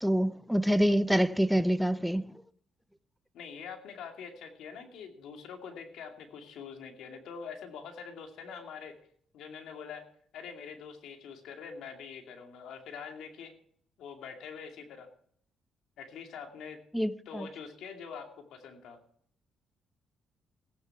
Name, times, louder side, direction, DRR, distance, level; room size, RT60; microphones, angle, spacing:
voice 1, 0.0-2.2 16.9-17.5, equal, ahead, 0.6 m, -26 dB
voice 2, 3.3-8.9 9.3-10.0 10.3-13.5 14.0-15.1 16.0-16.8 17.3-19.0, left 6 dB, 80° left, 2.5 m, -44 dB
17.0 x 9.3 x 4.8 m
cardioid pair, 90°, 0 cm